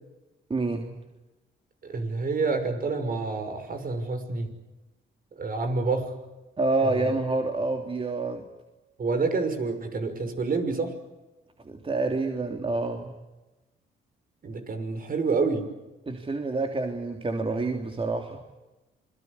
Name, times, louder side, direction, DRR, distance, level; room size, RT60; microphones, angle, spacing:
voice 1, 0.5-0.9 6.6-8.4 11.6-13.1 16.1-18.4, right 3 dB, 25° right, 3 dB, 3.2 m, -28 dB
voice 2, 1.8-4.5 5.4-6.1 6.8-7.1 9.0-10.9 14.4-15.7, right 4 dB, 45° right, 8 dB, 6.0 m, -28 dB
27.5 x 22.5 x 8.4 m, 1.1 s
cardioid pair, 90°, 20 cm